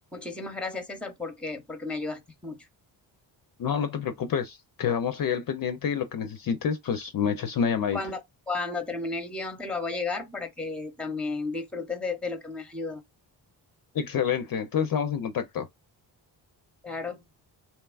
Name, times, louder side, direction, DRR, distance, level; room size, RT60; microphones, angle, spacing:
voice 1, 0.1-2.7 7.9-8.2 8.5-13.0 16.8-17.2, left 3 dB, ahead, 0.6 m, -33 dB
voice 2, 3.6-8.0 13.9-15.7, left 7 dB, 50° left, 0.5 m, -28 dB
2.9 x 2.3 x 2.3 m
cardioid pair, 70°, 47 cm